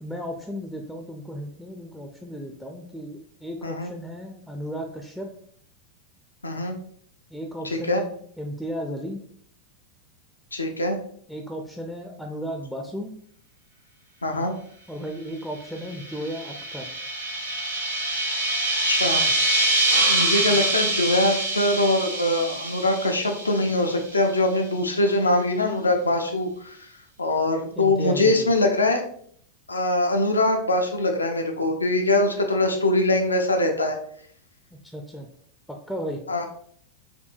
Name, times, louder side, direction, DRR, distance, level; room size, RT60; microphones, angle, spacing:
voice 1, 0.0-5.3 7.3-9.2 11.3-13.1 14.9-16.9 20.5-20.7 27.8-28.5 34.9-35.3 35.9-36.2, equal, ahead, 2 dB, 0.4 m, -34 dB
voice 2, 6.4-6.8 7.6-8.0 10.5-11.0 14.2-14.5 18.8-19.3 20.1-26.9 27.2-29.0 29.7-34.0 36.3-36.4, left 2 dB, 80° left, 3 dB, 0.4 m, -23 dB
sound 1, 15.8-24.1, right 2 dB, 80° right, 0.8 m, -25 dB
4.3 x 2.7 x 2.5 m, 0.62 s
figure-of-eight pair, 90°, 0 cm